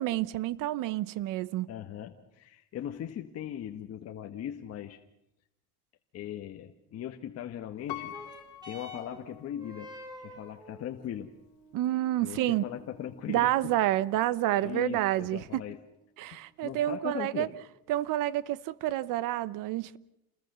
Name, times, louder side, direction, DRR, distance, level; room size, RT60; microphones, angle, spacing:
voice 1, 0.0-1.7 11.7-12.6 13.3-15.6 16.2-17.5 17.9-20.0, right 14 dB, 60° right, 1.1 m, -29 dB
voice 2, 1.7-5.0 6.1-8.2 8.6-11.3 12.2-13.7 14.6-15.8 16.6-17.5, left 10 dB, 40° left, 1.5 m, -39 dB
sound 1, 7.8-16.8 17.6-17.7, left 1 dB, 10° right, 5.6 m, -51 dB
Piano, 7.9-9.9 10.4-10.5, left 14 dB, 65° left, 1.5 m, -44 dB
28.5 x 20.5 x 6.8 m
cardioid pair, 135°, 37 cm